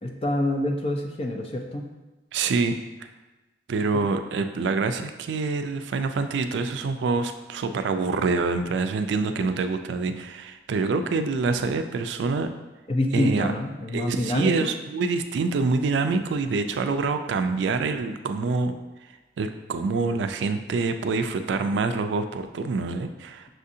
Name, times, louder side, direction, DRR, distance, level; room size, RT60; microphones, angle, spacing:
voice 1, 0.0-1.9 12.9-14.7, left 1 dB, 30° left, 2 dB, 0.4 m, -26 dB
voice 2, 2.3-2.8 3.7-12.5 13.1-13.5 13.9-18.7 19.4-23.5, right 4 dB, 80° right, 8 dB, 0.3 m, -26 dB
6.1 x 2.5 x 2.7 m, 1.1 s
head